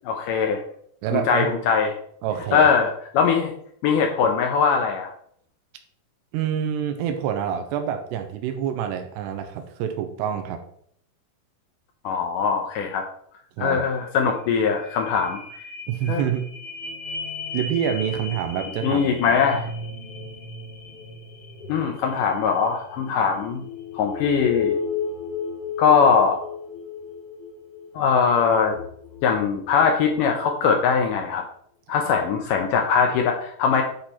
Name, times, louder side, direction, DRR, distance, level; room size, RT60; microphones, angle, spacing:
voice 1, 0.0-0.6 1.1-1.9 2.5-3.5 3.8-5.1 12.0-13.0 13.6-15.4 16.1-16.3 18.8-19.6 21.7-23.6 23.9-24.8 25.8-26.4 28.0-28.8 29.2-31.4 31.9-33.8, left 6 dB, 90° left, 2 dB, 1.8 m, -21 dB
voice 2, 1.0-1.5 2.2-2.7 6.3-10.6 13.6-13.8 15.9-16.5 17.5-19.4, right 9 dB, 85° right, 6 dB, 2.9 m, -27 dB
sound 1, 14.0-14.1 14.3-30.3 30.8-30.9, left 5 dB, 55° left, 2.5 m, -35 dB
10.0 x 4.4 x 4.2 m, 0.63 s
omnidirectional pair, 4.8 m